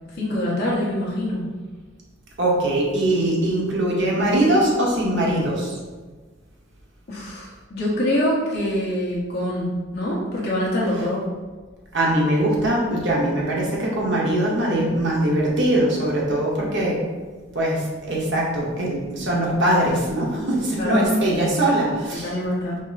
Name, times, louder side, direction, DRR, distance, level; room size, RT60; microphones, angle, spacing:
voice 1, 0.1-1.4 7.1-11.3 20.8-21.3 22.2-22.8, left 1 dB, 50° left, -5 dB, 1.2 m, -25 dB
voice 2, 2.4-5.7 11.9-17.0 17.5-22.3, right 1 dB, 55° right, -3 dB, 1.0 m, -21 dB
5.3 x 2.1 x 3.9 m, 1.4 s
head